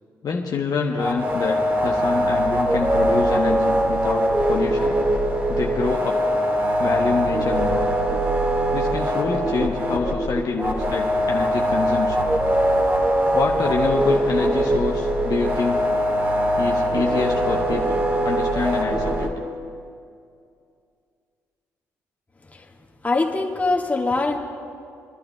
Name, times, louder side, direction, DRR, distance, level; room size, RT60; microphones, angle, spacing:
voice 1, 0.2-5.0 5.5-6.2 6.8-7.8 8.7-12.3 13.3-15.9 16.6-19.3, left 4 dB, 50° left, 0 dB, 0.9 m, -26 dB
sound 1, 1.0-19.3, right 1 dB, 25° right, 1.8 m, -22 dB
voice 2, 23.0-24.4, left 3 dB, 20° left, 0 dB, 1.6 m, -22 dB
28.5 x 11.5 x 2.3 m, 2.4 s
hypercardioid pair, 45°, 8 cm